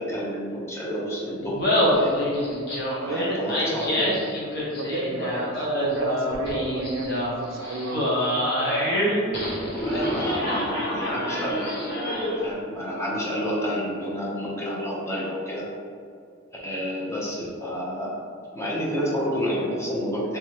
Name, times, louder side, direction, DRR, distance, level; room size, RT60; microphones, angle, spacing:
voice 1, 0.0-2.3 3.1-4.2 9.7-11.9 12.2-15.7 16.6-18.2 18.5-20.4, equal, 15° left, -5 dB, 0.7 m, -30 dB
Laughter, 1.4-12.5, equal, 55° left, 0.9 m, -26 dB
voice 2, 3.0-3.4 4.8-8.2, right 3 dB, 75° right, 4 dB, 0.3 m, -32 dB
3.5 x 3.0 x 2.9 m, 2.3 s
head